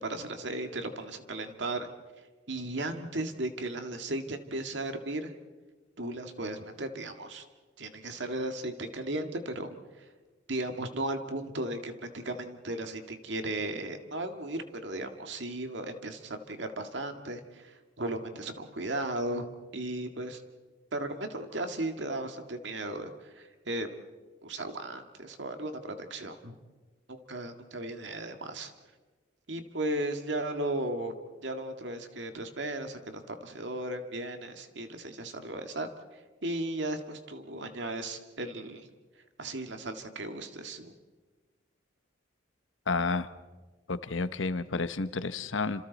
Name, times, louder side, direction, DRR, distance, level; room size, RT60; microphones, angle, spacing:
voice 1, 0.0-1.9 2.5-5.3 6.0-7.4 7.8-9.8 10.5-20.4 20.9-24.0 24.4-26.6 27.1-28.7 29.5-31.1 31.4-35.9 36.4-38.9 39.4-40.9, right 1 dB, 65° right, 6 dB, 2.0 m, -36 dB
voice 2, 42.9-43.3 43.9-45.8, left 3 dB, 80° left, 12 dB, 1.0 m, -30 dB
29.5 x 27.0 x 4.1 m, 1.3 s
head